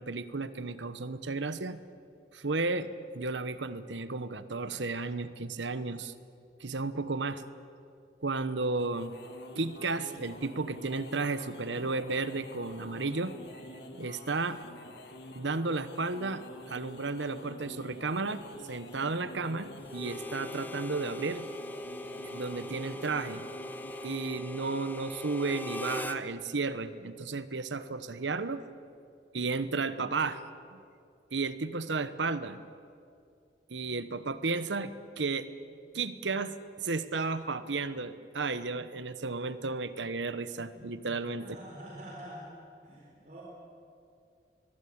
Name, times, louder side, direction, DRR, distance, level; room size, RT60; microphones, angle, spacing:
voice 1, 0.0-1.8 2.3-6.1 6.6-7.4 8.2-9.1 9.6-13.3 13.9-14.6 15.3-18.4 18.7-21.5 22.2-23.4 24.0-28.6 29.3-30.4 30.7-30.8 31.3-32.6 33.7-35.5 35.9-41.6, right 3 dB, 80° right, 13 dB, 1.1 m, -33 dB
sound 1, 8.6-24.4, left 1 dB, 65° left, 2.4 m, -48 dB
Harmonica, 19.9-26.2, left 1 dB, 10° left, 0.8 m, -40 dB
voice 2, 41.4-42.6 42.8-43.4, equal, 40° right, -2 dB, 4.0 m, -46 dB
22.5 x 22.0 x 8.7 m, 2.4 s
head